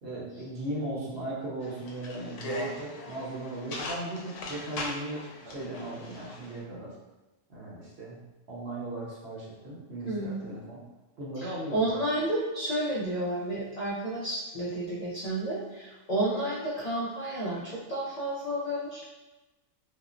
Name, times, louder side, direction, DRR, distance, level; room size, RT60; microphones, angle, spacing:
voice 1, 0.0-6.9 7.5-10.8 11.2-11.9, right 1 dB, 60° right, -6 dB, 1.0 m, -37 dB
sound 1, 1.6-6.6, left 1 dB, 75° left, 0.9 m, -40 dB
voice 2, 10.1-10.4 11.4-19.1, right 1 dB, 60° left, -7 dB, 0.4 m, -31 dB
3.5 x 2.0 x 2.4 m, 1.1 s
omnidirectional pair, 1.3 m